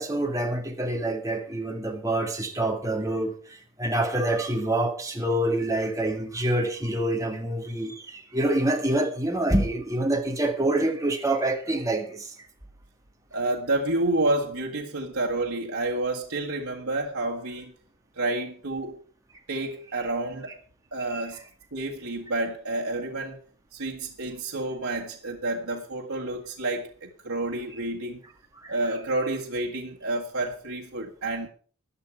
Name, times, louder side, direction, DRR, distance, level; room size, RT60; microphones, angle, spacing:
voice 1, 0.0-12.3 21.1-21.2 28.6-28.7, right 1 dB, 15° right, 1.9 m, -26 dB
voice 2, 13.3-17.7 18.2-19.0 19.5-20.5 20.9-21.4 21.7-23.4 23.7-28.2 28.7-31.5, right 2 dB, 80° right, 1.8 m, -29 dB
14.5 x 10.0 x 4.8 m
head